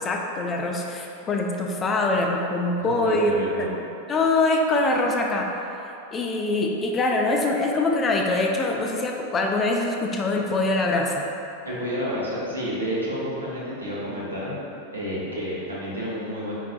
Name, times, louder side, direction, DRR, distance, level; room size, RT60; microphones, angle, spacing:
voice 1, 0.0-3.7 4.1-5.5 6.1-11.2, left 2 dB, 20° left, 1 dB, 0.4 m, -24 dB
voice 2, 2.8-3.7 11.6-14.5 14.9-16.5, equal, 75° right, -7 dB, 1.0 m, -30 dB
4.4 x 4.0 x 2.4 m, 2.7 s
figure-of-eight pair, 90°, 0 cm